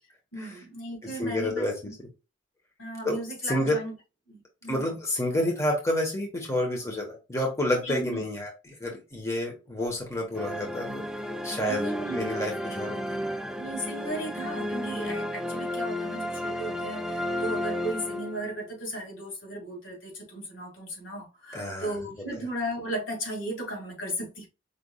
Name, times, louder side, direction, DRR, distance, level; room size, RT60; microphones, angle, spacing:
voice 1, 0.3-1.9 2.8-3.9 4.3-4.9 7.8-8.2 11.7-12.3 13.6-24.5, right 1 dB, 80° left, 2.3 m, -36 dB
voice 2, 1.0-2.1 3.0-3.2 3.4-3.8 4.7-11.0 11.4-13.2 21.5-22.0, left 1 dB, 15° left, 1.1 m, -29 dB
sound 1, 10.3-18.7, left 1 dB, 5° right, 0.4 m, -33 dB
5.1 x 3.5 x 2.3 m
head